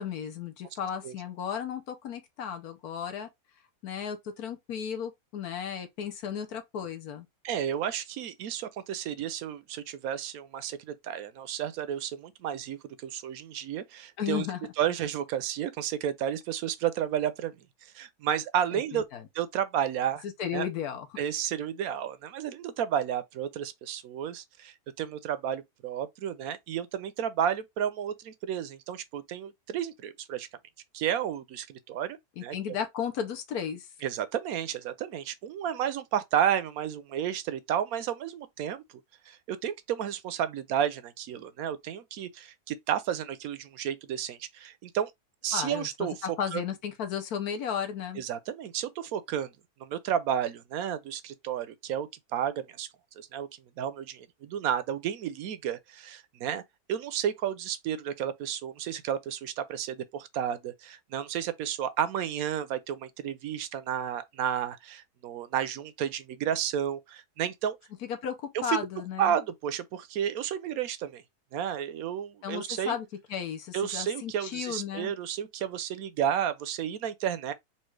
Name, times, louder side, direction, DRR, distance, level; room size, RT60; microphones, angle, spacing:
voice 1, 0.0-3.3 3.8-7.3 14.2-14.7 18.7-19.2 20.2-21.1 32.4-33.9 45.5-48.2 68.0-69.4 72.4-75.1, left 8 dB, 70° left, 1.3 m, -34 dB
voice 2, 7.4-14.5 14.8-17.5 17.8-19.0 19.3-20.2 20.5-20.7 21.2-30.5 30.9-32.6 34.0-38.8 39.3-45.1 45.4-46.1 46.5-46.6 48.2-49.5 49.8-52.9 53.2-53.5 53.8-56.6 56.9-67.8 68.7-68.8 69.2-71.2 71.5-73.0 73.7-77.5, right 9 dB, 70° right, 1.0 m, -32 dB
4.4 x 2.4 x 4.6 m
omnidirectional pair, 1.7 m